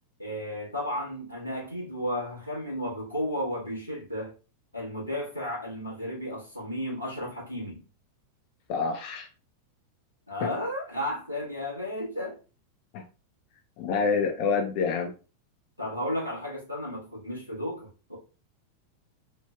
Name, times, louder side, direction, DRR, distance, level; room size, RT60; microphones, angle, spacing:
voice 1, 0.2-4.3 4.7-7.8 10.3-12.4 15.8-18.1, equal, 90° left, -5 dB, 1.1 m, -33 dB
voice 2, 8.7-9.3 10.4-10.5 12.9-13.0 13.8-15.1, left 5 dB, 45° left, 4 dB, 0.3 m, -27 dB
3.1 x 2.1 x 2.2 m, 0.35 s
figure-of-eight pair, 90°, 0 cm